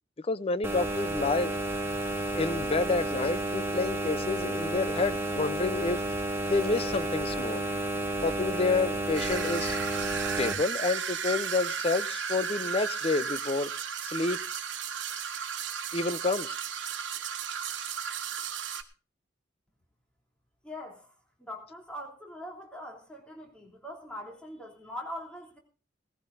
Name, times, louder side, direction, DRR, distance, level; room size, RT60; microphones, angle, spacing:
voice 1, 0.2-1.5 2.3-6.1 6.5-7.6 8.2-9.8 10.4-13.7 14.0-14.4 15.9-16.5, left 3 dB, 35° left, 0.6 m, -29 dB
sound 1, 0.6-10.5, right 1 dB, 15° right, 1.8 m, -31 dB
sound 2, 9.1-18.8, right 7 dB, 90° right, 1.2 m, -34 dB
voice 2, 20.6-21.1 21.4-25.6, left 1 dB, 5° left, 3.1 m, -42 dB
18.5 x 14.5 x 2.6 m
head